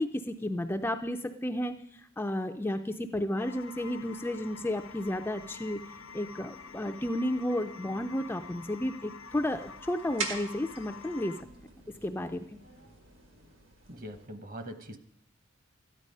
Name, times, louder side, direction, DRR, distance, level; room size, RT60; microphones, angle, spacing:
voice 1, 0.0-5.8 6.1-11.3 12.0-12.6, left 1 dB, 10° left, 6 dB, 0.4 m, -32 dB
sound 1, 3.4-11.4, left 5 dB, 75° left, 0.7 m, -47 dB
sound 2, 4.4-13.3, right 1 dB, 90° right, 6.6 m, -61 dB
sound 3, 9.3-14.3, right 4 dB, 70° right, 1.8 m, -43 dB
voice 2, 13.9-15.0, equal, 40° right, 8 dB, 1.0 m, -42 dB
13.5 x 9.7 x 5.4 m, 0.72 s
head